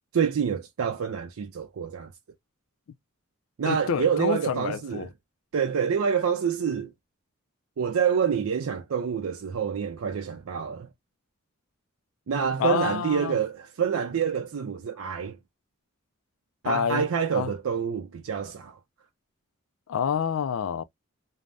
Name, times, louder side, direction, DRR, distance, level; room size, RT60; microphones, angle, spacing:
voice 1, 0.1-2.1 3.6-5.1 5.5-6.9 7.8-10.9 12.3-15.4 16.6-18.8, right 7 dB, 85° right, 0.4 m, -27 dB
voice 2, 3.6-5.1 12.6-13.4 16.7-17.1 17.4-17.5 19.9-20.8, left 7 dB, 75° left, 0.4 m, -28 dB
2.6 x 2.0 x 3.3 m
head